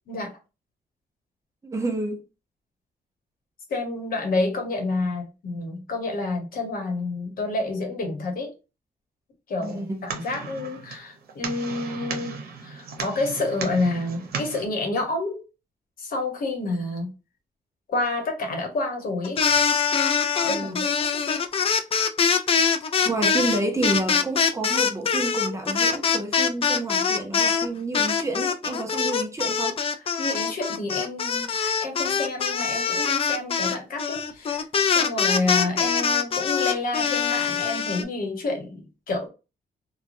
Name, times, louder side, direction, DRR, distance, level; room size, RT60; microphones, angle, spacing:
voice 1, 0.1-0.4 3.7-8.5 9.5-12.4 12.6-15.4 16.0-17.1 17.9-19.4 20.4-21.2 30.2-39.3, left 2 dB, 65° left, 1.0 m, -29 dB
voice 2, 1.6-2.2 9.6-10.0 20.5-20.8 23.0-29.8, right 2 dB, 20° right, 0.6 m, -29 dB
sound 1, 9.6-14.6, right 5 dB, 90° right, 0.8 m, -36 dB
sound 2, 19.2-27.7 27.9-38.0, left 6 dB, 40° left, 0.3 m, -23 dB
3.1 x 2.2 x 2.5 m
wide cardioid pair, 135°, 16 cm